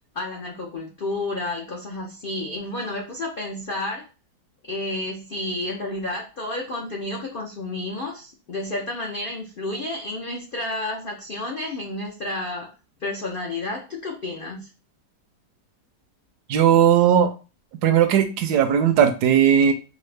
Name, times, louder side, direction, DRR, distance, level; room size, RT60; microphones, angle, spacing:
voice 1, 0.1-4.1 4.6-12.7 13.0-14.7, left 2 dB, 80° left, 0 dB, 0.4 m, -31 dB
voice 2, 16.5-17.3 17.8-19.7, right 9 dB, 75° right, 8 dB, 1.1 m, -17 dB
5.1 x 2.0 x 3.2 m, 0.32 s
omnidirectional pair, 1.9 m